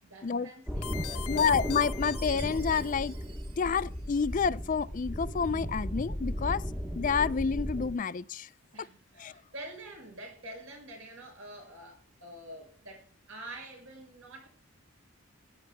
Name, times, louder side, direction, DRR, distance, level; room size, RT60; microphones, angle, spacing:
voice 1, 0.0-1.9 8.7-14.5, right 1 dB, 70° right, 6.3 m, -47 dB
sound 1, 0.7-7.9, equal, 5° right, 1.0 m, -35 dB
sound 2, 0.8-3.1, left 12 dB, 85° left, 0.6 m, -42 dB
voice 2, 1.3-3.1 3.6-6.6 6.9-8.5 9.2-9.3, left 6 dB, 35° left, 0.3 m, -29 dB
Chime, 2.1-4.5, right 6 dB, 50° right, 1.4 m, -51 dB
18.0 x 9.5 x 2.2 m
head